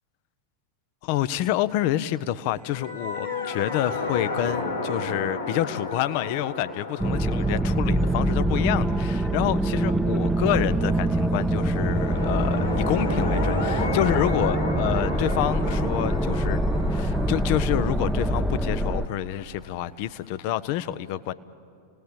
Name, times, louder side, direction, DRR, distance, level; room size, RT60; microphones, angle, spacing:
voice 1, 1.0-16.6 16.9-21.3, left 13 dB, 45° left, 15 dB, 0.7 m, -28 dB
sound 1, 2.6-9.9 11.7-19.5, left 3 dB, 80° left, 3.7 m, -33 dB
sound 2, 7.0-19.1, right 1 dB, 5° right, 0.7 m, -24 dB
29.5 x 19.0 x 8.8 m, 2.5 s
figure-of-eight pair, 90°, 0 cm